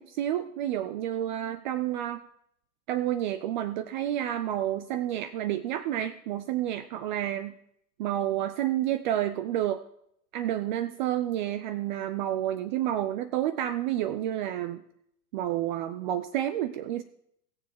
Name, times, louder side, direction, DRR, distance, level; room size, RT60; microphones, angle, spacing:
voice 1, 0.0-2.2 2.9-7.6 8.0-9.8 10.3-14.8 15.3-17.0, right 12 dB, 30° right, 13 dB, 0.4 m, -30 dB
18.0 x 7.1 x 4.6 m, 0.73 s
hypercardioid pair, 105°, 49 cm